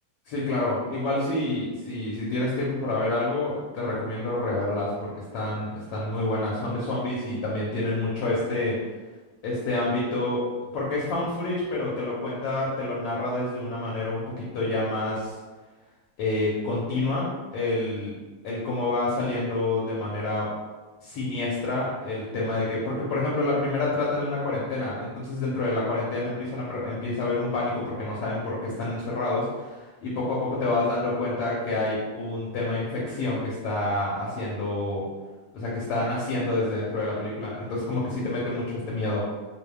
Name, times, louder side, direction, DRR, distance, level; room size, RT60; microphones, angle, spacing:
voice 1, 0.3-8.8 9.4-10.4 10.7-15.4 16.2-18.1 18.4-20.5 21.0-35.0 35.5-39.2, left 2 dB, 70° left, -5 dB, 1.5 m, -28 dB
6.7 x 2.7 x 2.3 m, 1.3 s
omnidirectional pair, 3.4 m